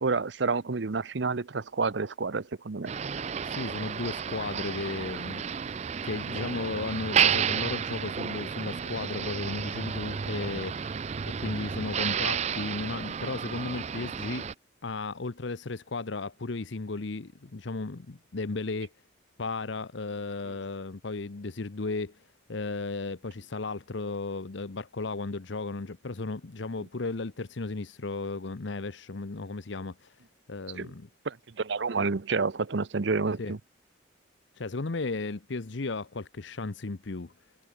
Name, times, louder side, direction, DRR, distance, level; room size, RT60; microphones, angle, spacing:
voice 1, 0.0-2.9 30.7-30.9 31.2-33.6, right 4 dB, 65° right, 0.7 m, -29 dB
Motor vehicle (road), 2.9-14.5, right 7 dB, 35° right, 0.4 m, -31 dB
voice 2, 3.4-5.4 6.0-10.8 11.3-14.5 14.8-18.9 19.4-22.2 22.5-30.2 30.5-31.1 33.4-33.6 34.6-37.3, left 3 dB, 70° left, 0.8 m, -35 dB
head